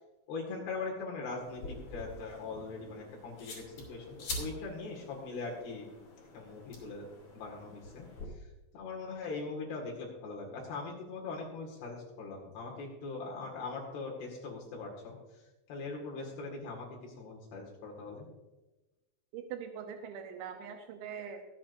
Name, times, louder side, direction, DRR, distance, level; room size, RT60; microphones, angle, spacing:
voice 1, 0.3-3.6 3.9-5.9 6.3-7.1 7.3-8.1 8.7-15.2 15.7-18.3, left 3 dB, 70° left, -1 dB, 3.9 m, -41 dB
sound 1, 1.4-8.3, left 2 dB, 45° left, 3.7 m, -46 dB
voice 2, 19.3-21.5, right 7 dB, 85° right, 4 dB, 3.1 m, -42 dB
23.5 x 8.7 x 2.6 m, 1.1 s
omnidirectional pair, 5.1 m